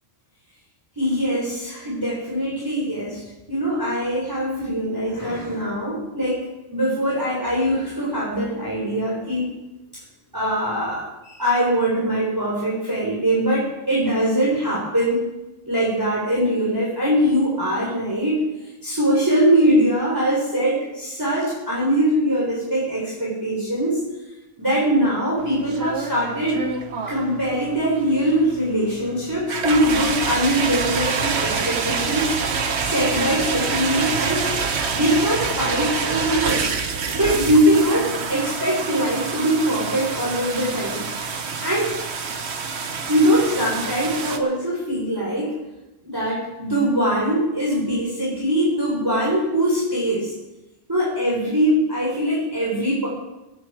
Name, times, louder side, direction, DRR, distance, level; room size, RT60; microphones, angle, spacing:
voice 1, 1.0-3.2 3.5-9.5 10.3-15.2 15.7-18.4 18.8-24.0 24.6-26.6 27.1-32.3 32.8-34.5 34.9-36.7 37.1-41.0 41.6-41.9 43.1-45.6 46.0-50.3 50.9-53.1, equal, 15° right, -5 dB, 3.9 m, -22 dB
sound 1, 25.4-44.4, right 5 dB, 65° right, 1.3 m, -27 dB
21.5 x 9.1 x 4.9 m, 1.0 s
omnidirectional pair, 1.3 m